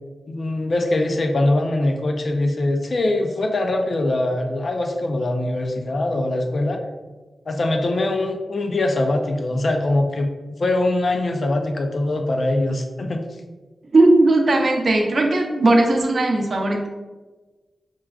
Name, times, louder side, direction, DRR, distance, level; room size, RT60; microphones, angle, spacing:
voice 1, 0.3-6.8 7.5-10.3 10.6-13.2, left 2 dB, 50° left, 4 dB, 0.4 m, -22 dB
voice 2, 13.9-16.9, right 2 dB, 50° right, 1 dB, 0.6 m, -17 dB
5.9 x 2.3 x 2.3 m, 1.3 s
wide cardioid pair, 125°, 0 cm